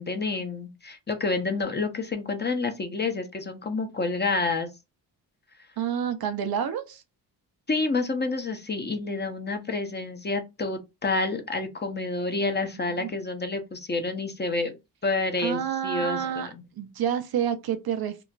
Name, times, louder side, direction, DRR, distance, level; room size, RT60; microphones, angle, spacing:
voice 1, 0.0-4.7 7.7-14.8 15.0-16.6, left 3 dB, 25° left, 0.7 m, -29 dB
voice 2, 5.8-7.0 12.6-13.1 15.4-16.5 16.8-18.2, right 8 dB, 55° right, 0.6 m, -29 dB
3.0 x 2.1 x 2.4 m
supercardioid pair, 55°, 44 cm